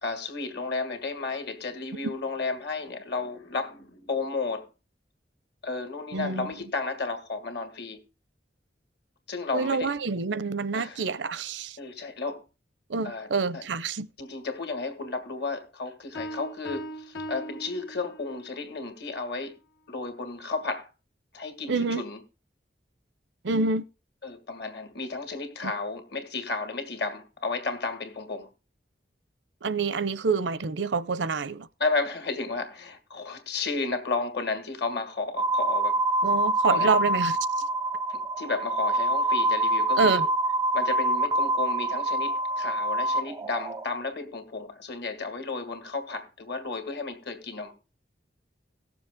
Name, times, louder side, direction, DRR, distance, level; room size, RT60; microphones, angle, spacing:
voice 1, 0.0-4.7 5.6-8.0 9.3-9.9 10.7-11.0 11.8-12.4 13.0-13.3 13.5-13.6 14.2-19.6 19.9-20.9 21.3-22.2 24.2-28.5 31.8-36.0 36.7-36.9 38.1-40.2 40.7-47.7, left 3 dB, 65° left, 2.1 m, -33 dB
voice 2, 6.1-6.5 9.5-11.8 12.9-14.1 21.7-22.1 23.4-23.8 25.6-25.7 29.6-31.7 36.2-37.6 40.0-40.3, right 4 dB, 75° right, 0.7 m, -27 dB
sound 1, 16.2-18.5, equal, 85° left, 1.6 m, -39 dB
sound 2, 35.4-43.8, right 1 dB, 20° right, 0.4 m, -26 dB
18.0 x 7.1 x 3.6 m
head